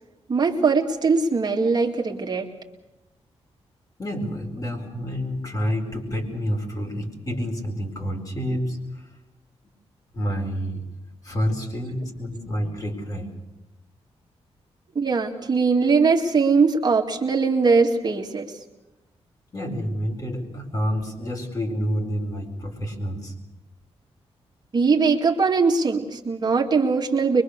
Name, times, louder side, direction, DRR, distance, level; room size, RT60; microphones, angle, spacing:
voice 1, 0.3-2.5 15.0-18.5 24.7-27.4, right 4 dB, 40° right, 0 dB, 2.2 m, -21 dB
voice 2, 4.0-9.1 10.1-10.8 11.2-13.3 19.5-23.3, equal, 35° left, 2 dB, 4.6 m, -28 dB
23.5 x 23.5 x 6.7 m, 0.97 s
wide cardioid pair, 140°, 11 cm